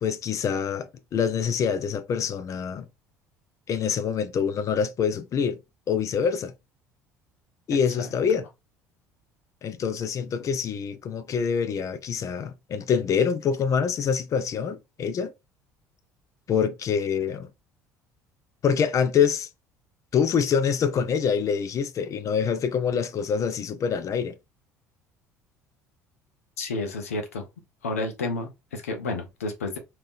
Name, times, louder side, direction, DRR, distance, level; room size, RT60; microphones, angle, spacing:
voice 1, 0.0-2.9 3.7-5.6 5.9-6.5 7.7-8.4 9.6-15.3 16.5-17.5 18.6-19.5 20.1-24.3, left 7 dB, 45° left, 0.5 m, -25 dB
voice 2, 26.6-27.4 27.8-29.8, left 3 dB, 90° left, 0.7 m, -31 dB
3.4 x 2.9 x 2.4 m
hypercardioid pair, 65°, 8 cm